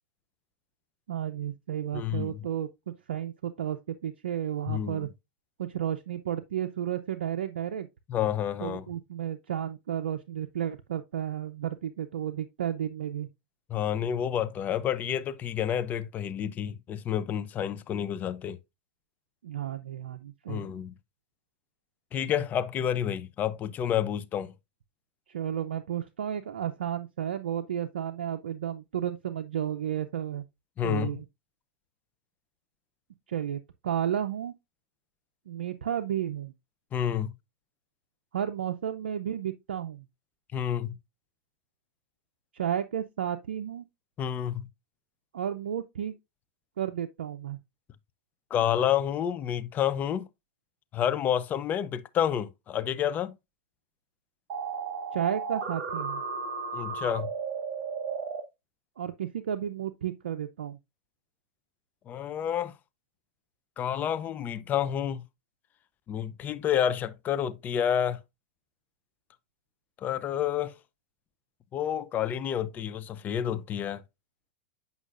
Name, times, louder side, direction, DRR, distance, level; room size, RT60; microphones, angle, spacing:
voice 1, 1.1-5.1 5.6-7.9 8.6-13.3 19.4-20.7 25.3-30.4 30.8-31.2 33.3-34.5 35.5-36.5 38.3-40.1 42.5-43.9 45.3-46.1 46.8-47.6 55.1-56.2 59.0-60.8, right 10 dB, 85° right, 0.5 m, -32 dB
voice 2, 1.9-2.4 4.7-5.1 8.1-8.9 13.7-18.6 20.5-20.9 22.1-24.5 30.8-31.1 36.9-37.3 40.5-41.0 44.2-44.7 48.5-50.3 50.9-53.4 56.7-57.3 62.1-62.7 63.8-65.2 66.1-68.2 70.0-70.7 71.7-74.0, left 9 dB, 30° left, 0.6 m, -29 dB
sound 1, 54.5-58.4, right 5 dB, 50° right, 2.1 m, -34 dB
8.1 x 5.4 x 2.5 m
hypercardioid pair, 120°, 6 cm